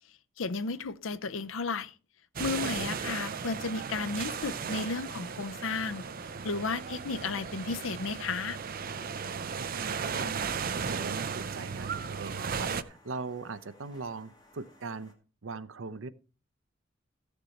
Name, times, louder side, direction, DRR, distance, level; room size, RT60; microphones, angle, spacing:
voice 1, 0.4-1.9 2.4-6.0 6.4-8.6, left 4 dB, 85° left, 0.6 m, -33 dB
sound 1, 2.4-12.8, right 6 dB, 45° right, 0.5 m, -35 dB
sound 2, 4.2-15.1, left 2 dB, 20° left, 2.2 m, -60 dB
voice 2, 9.6-15.1 15.4-16.1, right 4 dB, 85° right, 0.7 m, -40 dB
14.5 x 6.8 x 4.2 m
head